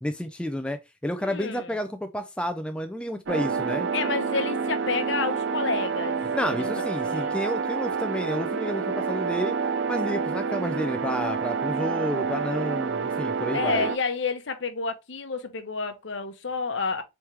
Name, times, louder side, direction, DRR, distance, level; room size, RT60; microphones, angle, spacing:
voice 1, 0.0-3.9 6.3-9.6 9.9-13.9, equal, 5° left, 0.3 m, -30 dB
voice 2, 1.2-1.8 3.9-6.2 6.6-7.4 13.5-17.0, left 4 dB, 65° left, 0.8 m, -30 dB
sound 1, 3.3-14.0, right 5 dB, 65° right, 0.5 m, -28 dB
4.4 x 3.5 x 3.0 m
head